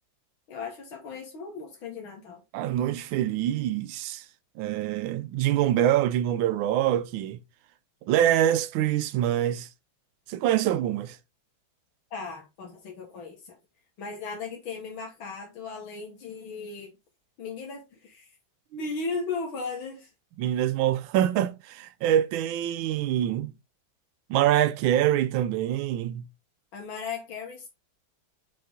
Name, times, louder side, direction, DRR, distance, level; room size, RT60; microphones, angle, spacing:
voice 1, 0.5-2.4 12.1-13.6 14.0-16.9 17.4-18.3 18.8-20.1 26.7-27.7, left 4 dB, 85° left, 2.3 m, -36 dB
voice 2, 2.5-4.2 4.6-7.4 8.1-9.7 10.3-11.2 18.7-18.8 20.4-23.5 24.3-26.2, right 11 dB, 85° right, 1.4 m, -25 dB
5.4 x 4.9 x 3.6 m
omnidirectional pair, 2.1 m